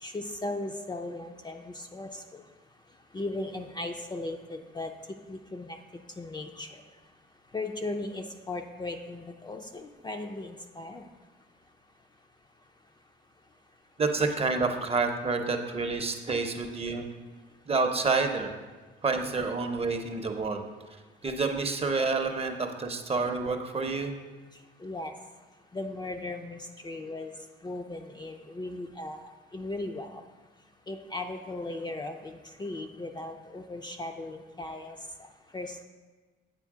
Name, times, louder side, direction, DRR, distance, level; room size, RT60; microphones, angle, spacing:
voice 1, 0.0-2.4 3.1-4.9 5.3-5.8 6.2-6.8 7.5-11.1 24.8-25.1 25.7-27.3 27.6-30.2 30.9-35.3 35.5-35.8, left 2 dB, 20° left, 4 dB, 0.4 m, -37 dB
voice 2, 14.0-17.1 17.7-18.5 19.0-20.6 21.2-24.1, right 4 dB, 30° right, 5 dB, 0.7 m, -28 dB
8.3 x 4.3 x 3.6 m, 1.3 s
cardioid pair, 90°, 20 cm